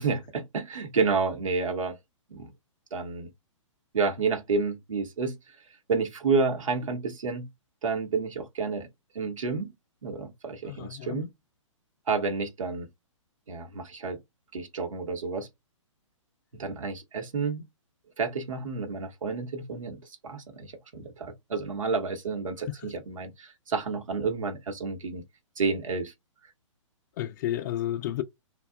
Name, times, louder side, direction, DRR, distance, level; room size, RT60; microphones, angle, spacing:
voice 1, 0.0-2.0 2.3-2.5 2.9-3.3 3.9-5.4 5.9-7.5 7.8-8.9 9.1-9.7 10.0-11.3 12.1-12.9 13.5-14.2 14.5-15.5 16.6-17.6 18.2-25.2 25.6-26.1, right 4 dB, 75° right, 0.9 m, -30 dB
voice 2, 10.7-11.2 27.2-28.2, left 13 dB, 35° left, 0.3 m, -31 dB
2.7 x 2.2 x 2.3 m
hypercardioid pair, 130°, 17 cm